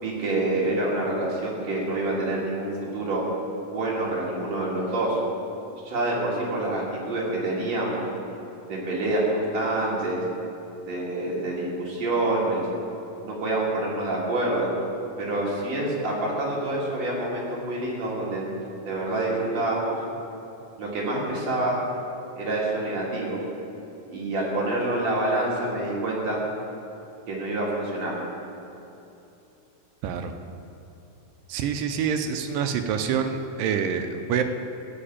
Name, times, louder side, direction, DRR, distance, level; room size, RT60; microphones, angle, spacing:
voice 1, 0.0-3.2 3.7-5.2 5.9-8.0 8.7-10.2 10.9-12.7 13.2-14.7 15.2-18.5 18.9-20.0 20.8-21.8 22.4-23.4 24.1-26.4 27.3-28.2, right 2 dB, 50° right, -4 dB, 3.0 m, -27 dB
voice 2, 31.5-34.4, right 7 dB, 80° right, 7 dB, 2.2 m, -26 dB
14.0 x 5.0 x 8.7 m, 2.8 s
omnidirectional pair, 4.1 m